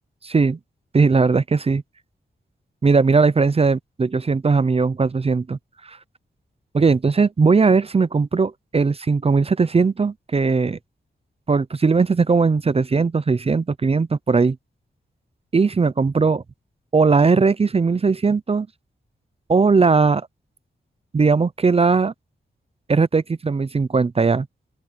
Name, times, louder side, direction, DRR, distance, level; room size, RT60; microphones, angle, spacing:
voice 1, 0.2-0.6 0.9-1.8 2.8-6.0 6.7-10.8 11.5-14.6 15.5-16.4 16.9-18.7 19.5-20.3 21.1-22.1 22.9-24.5, right 4 dB, 30° right, 0.6 m, -18 dB
open air
cardioid pair, 85°, 19 cm